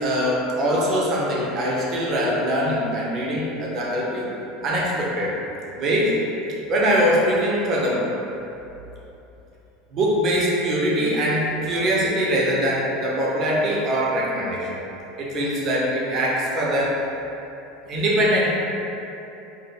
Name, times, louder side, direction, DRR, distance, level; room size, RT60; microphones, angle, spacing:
voice 1, 0.0-4.3 4.6-5.4 5.8-6.2 6.7-8.1 9.9-14.7 15.2-17.0 17.9-18.5, equal, 45° right, -4 dB, 0.6 m, -22 dB
2.1 x 2.1 x 3.2 m, 2.9 s
hypercardioid pair, 75°, 0 cm